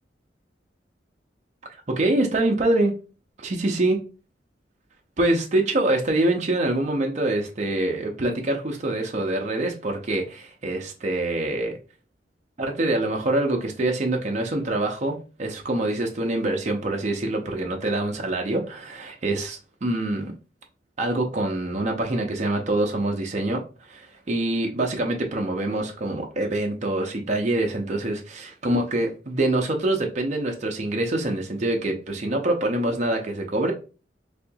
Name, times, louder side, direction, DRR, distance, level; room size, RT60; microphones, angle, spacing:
voice 1, 1.9-3.0 3.4-4.0 5.2-11.8 12.6-20.3 21.0-23.6 23.9-33.7, right 2 dB, 40° right, 0.6 m, -25 dB
4.2 x 2.7 x 2.2 m
head